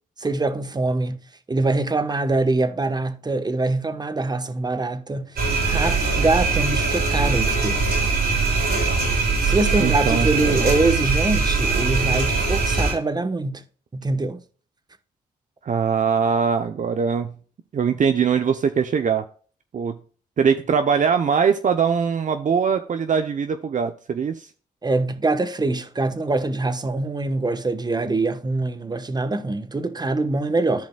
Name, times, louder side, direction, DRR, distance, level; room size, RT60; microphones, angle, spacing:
voice 1, 0.2-1.2 1.5-7.8 9.4-13.6 13.9-14.4 24.8-30.9, right 2 dB, 25° right, 1.1 m, -24 dB
sound 1, 5.4-12.9, right 4 dB, 75° right, 3.6 m, -21 dB
voice 2, 9.8-10.7 15.7-17.4 17.7-19.2 19.7-20.0 20.4-24.5, right 6 dB, 50° right, 0.7 m, -22 dB
14.0 x 5.1 x 2.3 m
cardioid pair, 65°, 16 cm